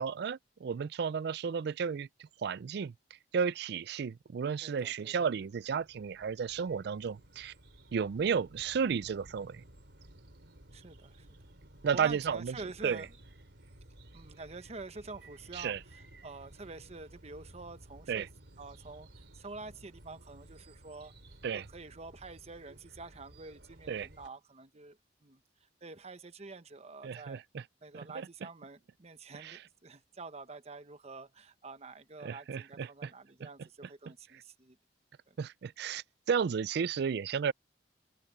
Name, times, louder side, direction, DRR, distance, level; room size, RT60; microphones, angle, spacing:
voice 1, 0.0-2.1 2.4-2.9 3.3-7.5 7.9-9.6 11.8-12.6 12.8-13.0 15.5-15.8 18.1-18.3 21.4-21.7 23.9-24.1 27.0-27.6 28.1-28.3 29.3-29.6 32.2-33.1 33.4-33.5 35.4-37.5, right 6 dB, 65° right, 0.4 m, -33 dB
voice 2, 4.6-5.1 10.7-11.3 11.9-13.1 14.1-18.3 18.6-19.1 19.3-21.1 21.5-25.4 25.8-27.4 27.8-34.8 35.3-35.4, right 3 dB, 35° right, 1.0 m, -47 dB
sound 1, 5.4-24.3, right 1 dB, 80° right, 3.6 m, -56 dB
open air
head